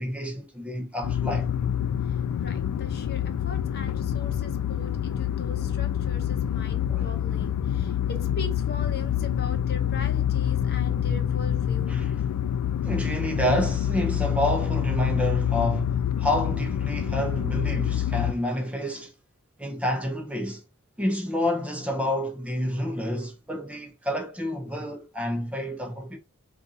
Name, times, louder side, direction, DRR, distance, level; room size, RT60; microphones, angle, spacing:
voice 1, 0.0-1.5 6.9-7.1 11.9-12.1 12.8-19.1 19.6-20.6 21.0-26.2, left 1 dB, 5° right, 0.5 m, -29 dB
sound 1, 1.0-18.3, left 9 dB, 85° left, 0.3 m, -27 dB
voice 2, 2.1-12.0, left 3 dB, 45° left, 0.7 m, -40 dB
5.1 x 2.4 x 2.7 m
head